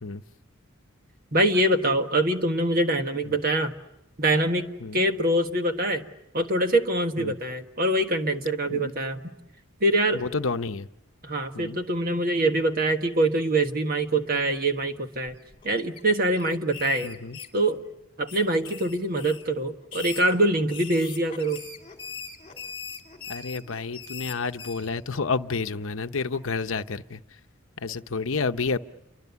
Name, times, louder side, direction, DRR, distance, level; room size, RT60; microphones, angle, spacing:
voice 1, 1.3-3.7 4.2-6.0 6.3-9.3 9.8-10.2 11.2-15.4 15.6-17.1 17.5-17.8 18.2-21.6, right 1 dB, 40° right, 6 dB, 1.4 m, -24 dB
voice 2, 10.1-10.9 11.5-11.8 17.0-17.4 23.3-27.2 27.8-28.8, left 4 dB, 65° left, 9 dB, 0.9 m, -30 dB
sound 1, 15.3-16.0 16.3-17.9 18.3-19.5 19.8-24.9, left 6 dB, 25° left, 3.0 m, -41 dB
29.5 x 23.5 x 7.0 m, 0.88 s
head